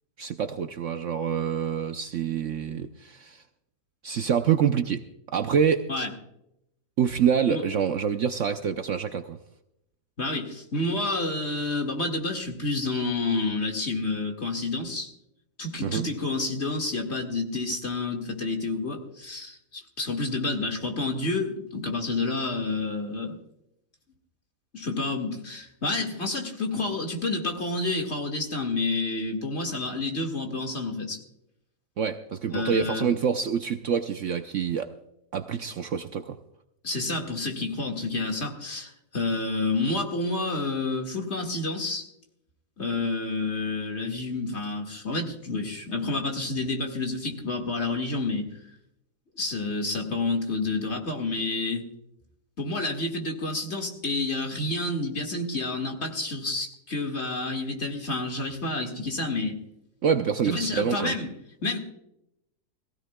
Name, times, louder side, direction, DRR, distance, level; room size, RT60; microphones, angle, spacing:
voice 1, 0.2-3.4 4.0-5.0 5.3-5.9 7.0-9.4 15.8-16.1 32.0-34.9 35.3-36.4 60.0-61.1, right 7 dB, 60° right, 8 dB, 0.9 m, -26 dB
voice 2, 10.2-15.1 15.6-23.4 24.7-31.2 32.5-33.1 36.8-42.1 42.8-48.5 49.4-51.9 52.6-59.6 60.4-61.3 61.6-61.8, left 2 dB, 45° left, 2 dB, 2.2 m, -29 dB
21.5 x 16.0 x 2.3 m, 0.81 s
omnidirectional pair, 1.7 m